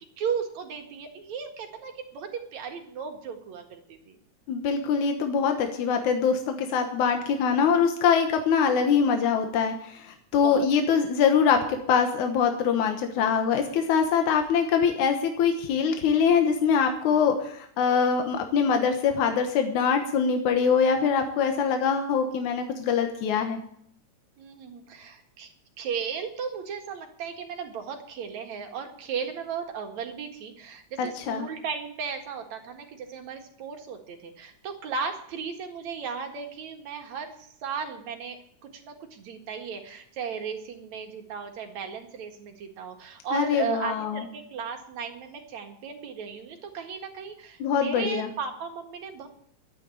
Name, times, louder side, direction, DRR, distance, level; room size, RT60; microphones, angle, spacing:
voice 1, 0.2-4.2 8.7-8.9 10.4-10.7 18.1-18.2 24.4-25.5 25.8-38.4 38.6-49.3, right 6 dB, 70° right, 4 dB, 3.1 m, -35 dB
voice 2, 4.5-23.6 31.0-31.5 43.3-44.3 47.6-48.3, left 6 dB, 85° left, 5 dB, 2.7 m, -23 dB
12.5 x 9.5 x 8.4 m, 0.66 s
omnidirectional pair, 3.4 m